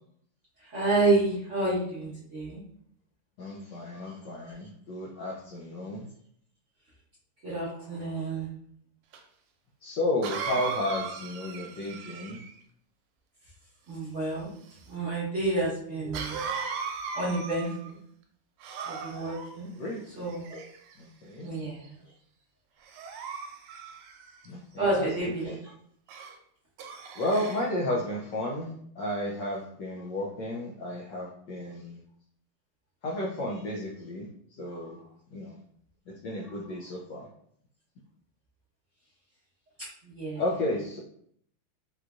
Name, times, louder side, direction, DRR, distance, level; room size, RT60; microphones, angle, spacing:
voice 1, 0.6-2.6 3.9-4.2 4.4-4.5 7.4-8.5 13.9-14.5 14.9-16.4 17.1-18.0 18.8-19.7 20.2-20.6 21.4-22.0 24.8-25.5 34.7-34.8 40.0-40.4, right 2 dB, 50° right, -9 dB, 1.0 m, -29 dB
voice 2, 3.4-6.1 9.8-12.4 19.8-20.3 21.0-21.5 24.4-25.1 25.5-25.6 27.2-32.0 33.0-35.0 35.3-35.6 36.1-37.3 40.4-41.0, left 1 dB, 75° left, -3 dB, 1.0 m, -33 dB
Cough, 9.1-9.2 10.2-12.6 16.1-17.9 18.6-19.5 20.3-20.9 21.6-21.9 22.8-24.5 26.1-26.4 26.8-27.7, right 5 dB, 80° right, 1.4 m, -37 dB
4.4 x 2.5 x 2.3 m, 0.66 s
omnidirectional pair, 2.4 m